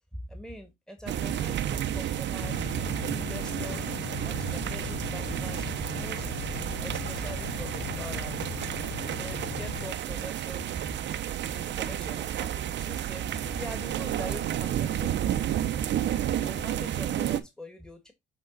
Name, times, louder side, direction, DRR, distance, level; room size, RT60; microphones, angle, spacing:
voice 1, 0.1-3.9 4.2-6.5 6.8-10.9 11.4-15.7 16.4-18.1, equal, 5° left, 1.6 m, -43 dB
sound 1, 1.1-17.4, right 11 dB, 65° right, 0.7 m, -31 dB
sound 2, 2.4-9.9, left 8 dB, 50° left, 0.8 m, -39 dB
8.1 x 3.8 x 3.8 m
cardioid pair, 90°, 20 cm